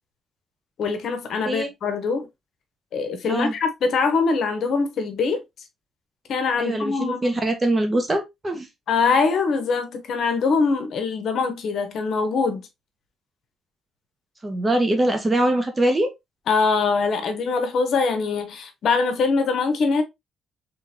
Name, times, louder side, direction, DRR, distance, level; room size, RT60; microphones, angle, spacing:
voice 1, 0.8-2.3 2.9-5.4 6.3-7.2 8.9-12.7 16.5-20.0, left 4 dB, 65° left, 0.9 m, -23 dB
voice 2, 6.6-8.7 14.4-16.1, right 1 dB, 25° right, 1.2 m, -22 dB
3.7 x 3.5 x 2.8 m
cardioid pair, 90°, 0 cm